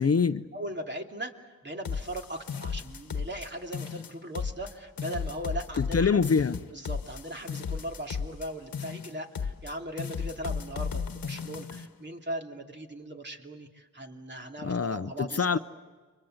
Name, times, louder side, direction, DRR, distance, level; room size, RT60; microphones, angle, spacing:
voice 1, 0.0-0.4 5.8-6.6 14.6-15.6, left 5 dB, 45° left, 0.8 m, -25 dB
voice 2, 0.5-6.2 6.7-15.6, right 1 dB, 30° right, 2.8 m, -39 dB
sound 1, 1.8-3.5 3.7-4.7 5.0-8.5 8.7-9.7 10.0-11.9, left 6 dB, 80° left, 1.3 m, -35 dB
30.0 x 24.5 x 8.0 m
wide cardioid pair, 85°, 34 cm